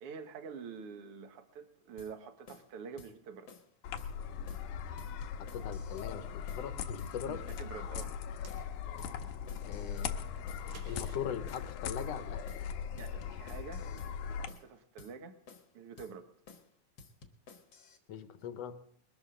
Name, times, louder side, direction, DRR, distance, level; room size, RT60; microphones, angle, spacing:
voice 1, 0.0-3.5 7.2-8.2 13.0-13.9 14.4-15.4 15.7-16.3, right 6 dB, 55° right, 7 dB, 2.0 m, -47 dB
sound 1, 2.0-2.1 2.5-2.7 3.0-3.1 3.5-3.7 4.0-4.1 4.5-4.7 5.0-6.1 6.5-6.7 7.0-7.1 7.5-7.7 8.0-8.1 8.5-8.7 9.0-10.1 10.5-10.7 11.0-11.1 11.5-11.7 12.0-12.1 12.5-12.7 13.0-14.1 14.5-14.7 15.0-15.1 15.5-15.7 16.0-16.1 16.5-16.7 17.0-18.0, left 4 dB, 50° left, 1.6 m, -55 dB
sound 2, 3.8-14.5, left 7 dB, 80° left, 2.4 m, -39 dB
voice 2, 5.4-7.4 9.6-10.2 10.8-12.5 18.1-18.8, left 8 dB, 65° left, 9 dB, 1.9 m, -41 dB
sound 3, 8.2-9.1 10.5-11.2, right 6 dB, 75° right, 2.9 m, -55 dB
21.5 x 13.0 x 3.8 m, 0.65 s
omnidirectional pair, 3.6 m